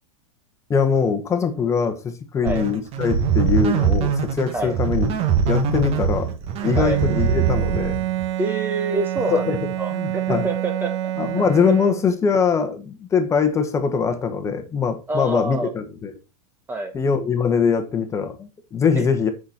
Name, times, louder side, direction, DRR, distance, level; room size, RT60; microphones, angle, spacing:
voice 1, 0.7-5.2 5.5-6.3 6.6-8.0 9.3-9.6 9.9-10.4 11.2-16.1 16.9-19.3, left 6 dB, 15° left, 1.3 m, -22 dB
sound 1, 2.5-8.3, right 7 dB, 35° right, 1.4 m, -22 dB
Bowed string instrument, 6.6-12.4, right 13 dB, 60° right, 1.1 m, -28 dB
voice 2, 8.4-9.4 9.8-10.9 15.1-15.7 16.7-16.9 19.0-19.1, right 3 dB, 10° right, 0.9 m, -26 dB
8.2 x 6.2 x 4.3 m
supercardioid pair, 145°, 18 cm